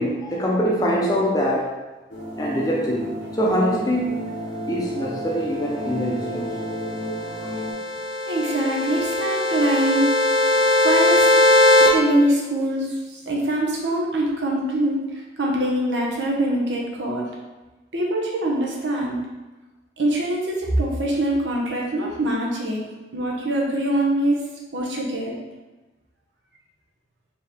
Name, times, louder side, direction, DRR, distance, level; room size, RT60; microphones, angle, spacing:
voice 1, 0.0-1.8 2.3-4.3 4.7-6.5 7.4-7.5, equal, 20° left, -3 dB, 0.7 m, -24 dB
sound 1, 2.1-7.7, equal, 75° left, 1.0 m, -32 dB
sound 2, 6.9-11.9, left 2 dB, 20° right, 0.7 m, -19 dB
voice 2, 8.3-10.1 10.8-11.3 11.8-15.0 15.4-17.3 17.9-19.2 20.0-22.8 23.1-24.4 24.7-25.3, right 1 dB, 70° right, -2 dB, 0.9 m, -23 dB
4.5 x 3.0 x 3.5 m, 1.2 s
head